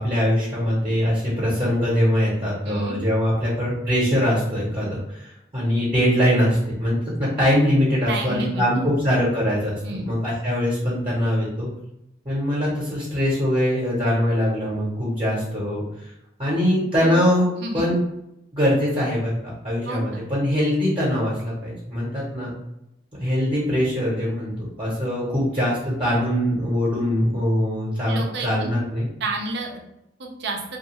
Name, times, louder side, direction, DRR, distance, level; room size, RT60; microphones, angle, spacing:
voice 1, 0.0-11.7 12.2-15.8 16.4-17.5 17.7-18.0 18.5-22.5 23.2-29.1, equal, 30° right, -8 dB, 0.9 m, -22 dB
voice 2, 2.6-3.0 8.1-8.9 9.8-10.1 17.0-17.2 17.6-17.9 19.9-20.2 28.1-28.7 29.2-29.8 30.2-30.6, right 2 dB, 65° right, 2 dB, 0.5 m, -30 dB
2.4 x 2.3 x 2.9 m, 0.83 s
head